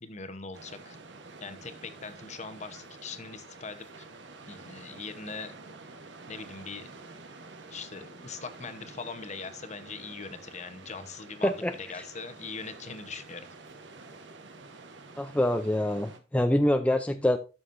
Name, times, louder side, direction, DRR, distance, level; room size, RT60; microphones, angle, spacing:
voice 1, 0.0-1.0 1.4-4.1 4.5-5.5 6.3-6.9 7.7-13.5, left 4 dB, 40° left, 1.0 m, -41 dB
sound 1, 0.5-16.2, right 3 dB, 80° right, 1.3 m, -49 dB
voice 2, 11.4-12.1 15.2-17.4, left 1 dB, 5° left, 0.5 m, -26 dB
12.5 x 6.2 x 2.6 m
head